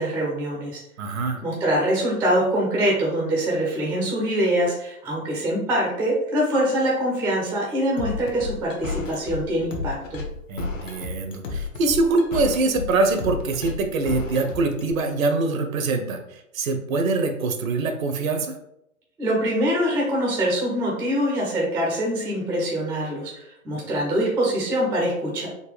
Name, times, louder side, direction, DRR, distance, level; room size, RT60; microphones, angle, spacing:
voice 1, 0.0-0.8 1.4-10.2 19.2-25.5, equal, 5° right, -3 dB, 0.4 m, -24 dB
voice 2, 1.0-1.4 10.5-16.2 16.5-18.5, right 3 dB, 65° right, 6 dB, 0.8 m, -24 dB
sound 1, 8.0-14.9, left 4 dB, 60° left, 0.9 m, -31 dB
3.9 x 2.2 x 3.2 m, 0.79 s
figure-of-eight pair, 110°, 43 cm